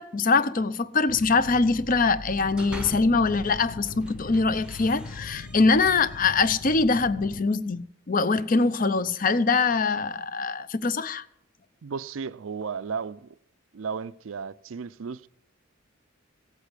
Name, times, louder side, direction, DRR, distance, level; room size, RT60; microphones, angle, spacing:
voice 1, 0.0-11.2, left 4 dB, 40° left, 0.7 m, -23 dB
sound 1, 1.1-7.4, left 3 dB, 85° left, 0.7 m, -41 dB
sound 2, 2.2-3.3 3.8-6.6, right 1 dB, 5° right, 0.8 m, -44 dB
voice 2, 11.8-13.3 13.7-15.3, right 5 dB, 75° right, 0.5 m, -34 dB
16.0 x 8.3 x 8.2 m
head